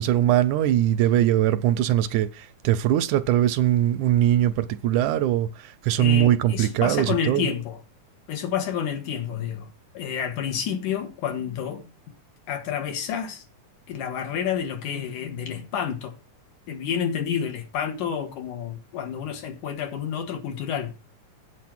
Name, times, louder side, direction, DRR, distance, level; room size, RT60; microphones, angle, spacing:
voice 1, 0.0-7.5, right 12 dB, 80° right, 1.9 m, -21 dB
voice 2, 6.0-7.8 8.3-11.9 12.5-13.4 13.9-16.1 16.7-21.0, left 8 dB, 75° left, 2.9 m, -29 dB
8.5 x 7.8 x 5.9 m
omnidirectional pair, 3.7 m